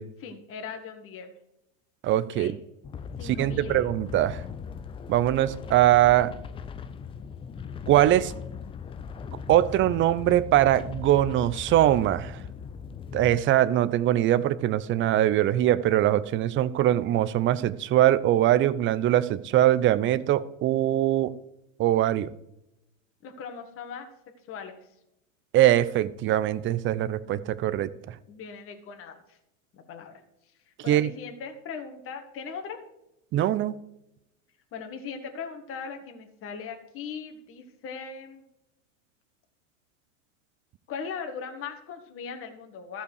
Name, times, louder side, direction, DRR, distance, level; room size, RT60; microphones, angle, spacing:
voice 1, 0.2-1.3 2.4-2.5 3.2-3.9 23.2-24.1 24.5-24.8 28.3-29.4 29.7-30.2 30.8-32.8 34.7-38.4 40.9-43.0, left 6 dB, 35° left, 5 dB, 1.8 m, -39 dB
voice 2, 2.0-2.6 3.2-4.4 5.1-6.3 7.9-8.3 9.5-12.4 13.1-21.3 21.8-22.3 25.5-28.2 30.9-31.1 33.3-33.7, right 13 dB, 30° right, 17 dB, 0.6 m, -22 dB
sound 1, 2.8-13.4, left 6 dB, 15° left, 0.4 m, -39 dB
13.5 x 5.6 x 6.6 m, 0.84 s
hypercardioid pair, 110°, 40 cm